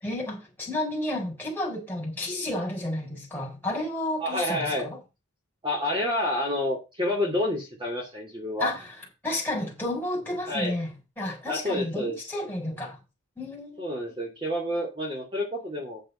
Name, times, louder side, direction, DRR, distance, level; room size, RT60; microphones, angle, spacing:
voice 1, 0.0-5.0 8.6-8.9 9.2-13.0 13.4-13.9, left 1 dB, 10° left, 4.2 m, -31 dB
voice 2, 4.2-4.9 5.6-8.7 10.5-10.8 11.4-12.2 13.8-16.0, left 1 dB, 25° right, 2.5 m, -29 dB
8.7 x 6.8 x 5.6 m
head